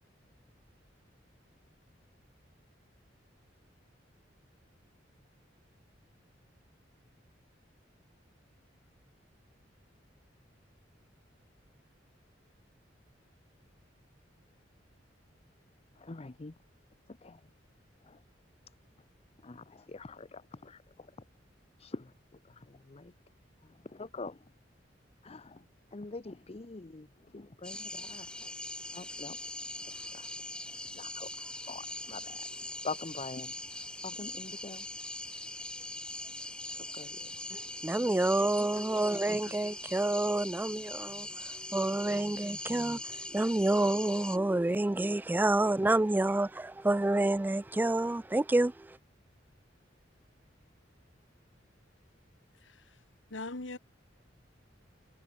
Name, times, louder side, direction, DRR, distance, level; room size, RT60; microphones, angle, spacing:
voice 1, 16.0-16.5 17.2-17.4 18.1-18.2 19.4-20.8 21.8-22.1 22.9-23.1 23.9-24.4 25.2-25.6 25.9-27.1 27.3-28.5 28.9-29.4 30.1-30.3 30.9-32.5 32.8-33.5 34.0-34.8 36.9-37.3, left 3 dB, 35° left, 0.7 m, -44 dB
sound 1, 27.6-44.4, left 1 dB, 5° left, 1.1 m, -42 dB
voice 2, 37.5-41.3 41.7-43.0 43.3-49.0, right 2 dB, 10° right, 0.3 m, -28 dB
voice 3, 53.3-53.8, left 2 dB, 85° left, 2.1 m, -42 dB
head